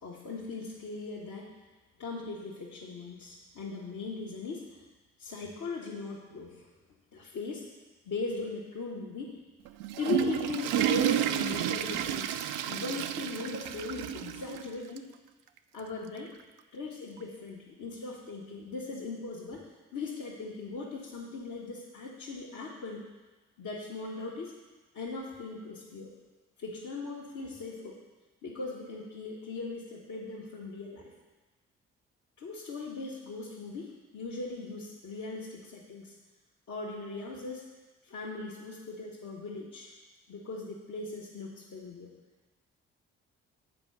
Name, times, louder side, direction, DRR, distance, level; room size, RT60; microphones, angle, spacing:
voice 1, 0.0-1.6 2.0-4.8 5.2-6.7 7.1-7.7 8.0-9.4 10.0-15.0 15.7-16.3 16.7-23.0 23.6-24.5 24.9-26.1 26.6-28.0 28.4-31.1 32.4-36.1 36.7-37.6 38.0-39.9 40.3-42.1, left 3 dB, 60° left, -6 dB, 1.4 m, -39 dB
Water / Toilet flush, 9.7-14.7 15.0-15.1 15.8-15.9 17.2-17.3, right 11 dB, 75° right, 0.5 m, -31 dB
7.6 x 4.6 x 6.5 m, 1.2 s
hypercardioid pair, 45°, 32 cm